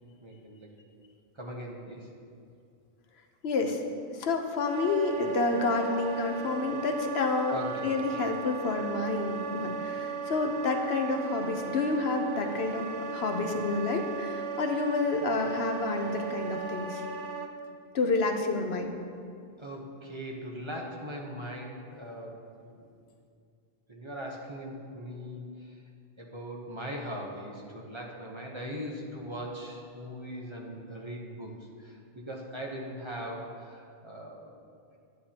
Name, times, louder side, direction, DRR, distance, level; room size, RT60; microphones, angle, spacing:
voice 1, 0.2-0.7 1.3-2.1 7.5-8.3 19.6-22.9 23.9-25.8 26.2-34.5, equal, 30° right, -1 dB, 1.0 m, -40 dB
voice 2, 3.4-3.8 4.1-7.6 7.8-17.0 17.9-19.0, left 3 dB, 80° left, 5 dB, 1.0 m, -29 dB
Wind instrument woodwind instrument, 4.7-17.5, right 6 dB, 60° right, 0.7 m, -36 dB
11.0 x 9.6 x 2.9 m, 2.4 s
omnidirectional pair, 1.0 m